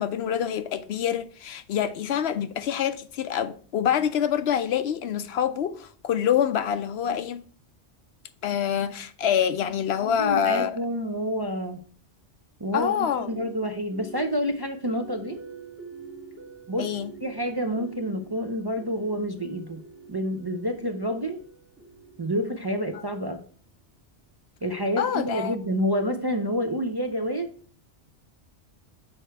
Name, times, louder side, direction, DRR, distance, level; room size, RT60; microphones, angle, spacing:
voice 1, 0.0-7.4 8.4-10.8 12.7-13.3 16.8-17.1 25.0-25.5, left 9 dB, 70° left, 0.8 m, -26 dB
voice 2, 10.0-11.8 12.6-15.4 16.7-16.9 17.2-19.8 20.1-21.4 22.2-23.4 24.6-27.5, equal, 35° right, 0.4 m, -28 dB
sound 1, 13.3-23.4, right 3 dB, 15° right, 0.8 m, -46 dB
6.5 x 4.5 x 4.5 m
omnidirectional pair, 1.2 m